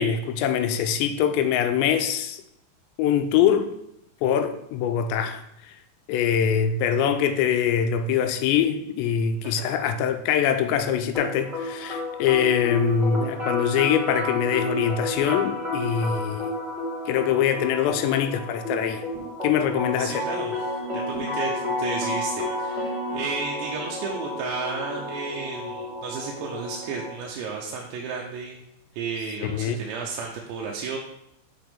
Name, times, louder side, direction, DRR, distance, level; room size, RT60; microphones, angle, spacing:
voice 1, 0.0-2.4 3.0-3.7 4.2-5.7 6.1-16.5 17.1-19.0 19.4-20.2 29.4-29.8, left 8 dB, 85° left, 2.9 m, -23 dB
voice 2, 9.4-9.8 20.0-21.5 21.8-28.6 29.0-31.0, right 5 dB, 90° right, 3.0 m, -33 dB
sound 1, 11.1-27.1, left 1 dB, 15° right, 1.7 m, -31 dB
7.8 x 5.9 x 3.6 m
omnidirectional pair, 5.0 m